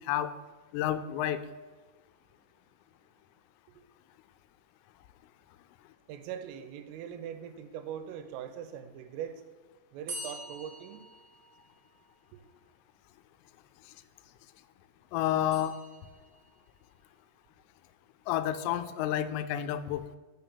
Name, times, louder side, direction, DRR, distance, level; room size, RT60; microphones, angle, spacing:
voice 1, 0.7-1.4 15.1-15.8 18.3-20.2, left 11 dB, 85° left, 11 dB, 3.2 m, -30 dB
voice 2, 6.1-9.4 9.9-11.1 12.3-12.4, right 9 dB, 90° right, 9 dB, 3.3 m, -41 dB
sound 1, 10.1-12.0 15.5-16.6, right 1 dB, 45° right, 1.8 m, -45 dB
7.1 x 6.0 x 6.8 m, 1.3 s
omnidirectional pair, 5.8 m